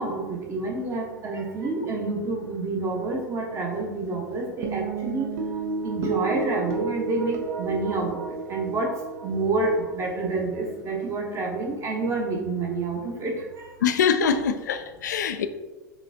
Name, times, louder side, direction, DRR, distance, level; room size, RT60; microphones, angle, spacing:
voice 1, 0.0-5.3 5.8-8.2 8.5-8.9 9.2-13.7, right 3 dB, 30° right, 1.0 m, -28 dB
sound 1, 4.6-11.2, right 4 dB, 55° right, 0.7 m, -32 dB
voice 2, 13.8-15.5, left 6 dB, 70° left, 0.4 m, -23 dB
5.0 x 3.1 x 2.8 m
figure-of-eight pair, 85°, 10 cm